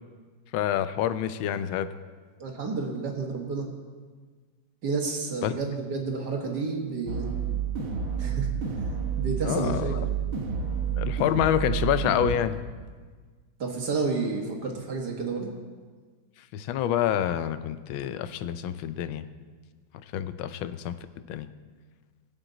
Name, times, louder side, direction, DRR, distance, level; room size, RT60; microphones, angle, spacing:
voice 1, 0.5-1.9 5.4-5.5 9.4-10.0 11.0-12.6 16.5-19.3 19.9-21.0 21.3-21.5, left 10 dB, 85° left, 13 dB, 1.4 m, -27 dB
voice 2, 2.4-3.7 4.8-7.3 8.2-8.5 9.2-10.1 13.6-15.5, right 4 dB, 55° right, 1 dB, 2.1 m, -30 dB
sound 1, 7.1-12.4, right 6 dB, 75° right, 2.2 m, -29 dB
20.0 x 7.8 x 3.9 m, 1.5 s
omnidirectional pair, 2.1 m